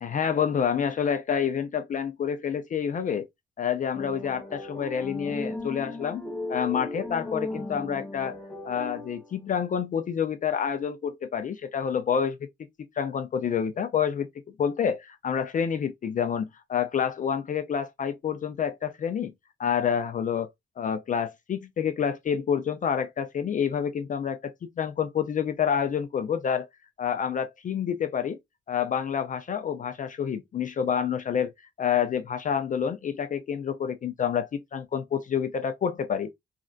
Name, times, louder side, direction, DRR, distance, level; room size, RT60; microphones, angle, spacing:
voice 1, 0.0-3.3 3.6-6.2 6.5-8.4 8.6-12.4 12.8-14.3 14.6-19.3 19.6-20.5 20.8-26.7 27.0-28.4 28.7-31.5 31.8-36.3, left 7 dB, 40° left, 0.4 m, -28 dB
sound 1, 3.9-9.4, left 2 dB, 5° left, 0.7 m, -36 dB
3.2 x 2.5 x 2.3 m
wide cardioid pair, 155°, 20 cm